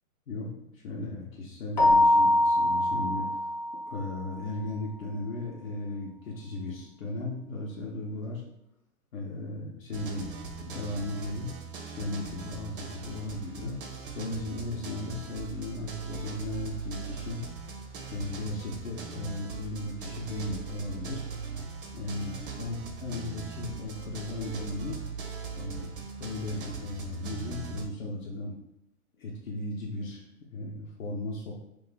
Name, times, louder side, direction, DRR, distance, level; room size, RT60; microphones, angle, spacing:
voice 1, 0.3-3.4 3.9-8.4 9.1-10.3 10.6-11.5 12.0-13.8 14.1-17.4 18.1-21.2 21.9-25.0 25.5-28.6 29.2-30.2 30.5-31.6, left 2 dB, 65° left, -3 dB, 0.8 m, -36 dB
Keyboard (musical), 1.8-4.2, left 1 dB, 35° left, 0.4 m, -23 dB
sound 1, 9.9-27.9, right 5 dB, 40° right, 0.5 m, -40 dB
2.5 x 2.3 x 3.9 m, 0.80 s
hypercardioid pair, 140°, 44 cm